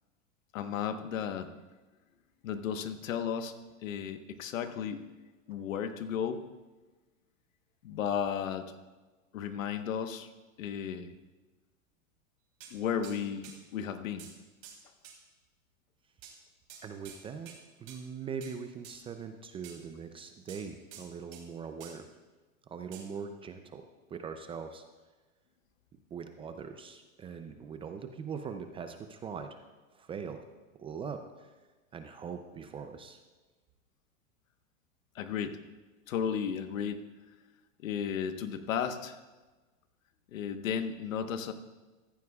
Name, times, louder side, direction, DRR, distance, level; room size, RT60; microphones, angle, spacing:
voice 1, 0.5-1.5 2.4-3.5 3.8-5.1 5.5-6.4 7.8-8.7 9.3-10.3 10.6-11.1 12.7-14.3 35.1-35.6 36.1-37.1 37.8-39.2 40.3-41.5, left 8 dB, 75° left, 8 dB, 1.2 m, -34 dB
sound 1, 12.6-12.7 13.0-13.2 13.4-13.6 14.2-14.4 14.6-14.8 15.0-15.2 16.2-16.4 16.7-17.2 17.5-17.6 17.9-18.0 18.4-18.6 18.8-19.0 19.6-19.8 20.5-21.4 21.8-22.0 22.9-23.0, right 7 dB, 40° right, 3.2 m, -49 dB
voice 2, 16.8-17.5 17.8-22.0 22.7-23.8 24.1-24.8 26.1-29.6 29.9-30.4 30.8-31.5 31.9-33.2, right 6 dB, 15° right, 7 dB, 0.4 m, -41 dB
14.5 x 14.5 x 2.3 m, 1.2 s
hypercardioid pair, 125°, 40 cm